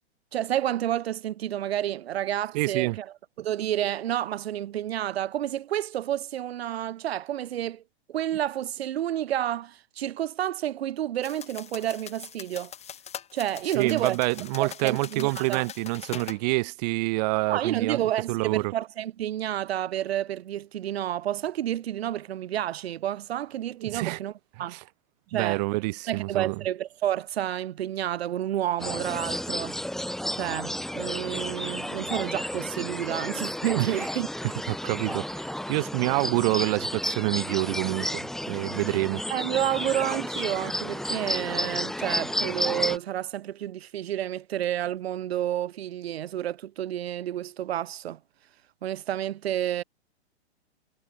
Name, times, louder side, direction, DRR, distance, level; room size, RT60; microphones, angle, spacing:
voice 1, 0.3-7.8 8.1-12.7 13.3-14.2 14.6-15.6 17.5-24.3 24.6-24.8 25.3-25.6 26.1-29.8 30.3-34.3 35.1-35.2 39.3-48.2 48.8-49.8, right 11 dB, 65° right, 1.3 m, -30 dB
voice 2, 2.5-3.0 13.7-18.7 23.8-24.2 24.7-24.8 25.3-26.6 33.8-34.0 34.4-39.2, right 24 dB, 40° right, 0.9 m, -27 dB
sound 1, 11.2-16.4, left 9 dB, 20° left, 4.5 m, -42 dB
sound 2, 28.8-43.0, left 1 dB, ahead, 1.1 m, -32 dB
hypercardioid pair, 130°, 33 cm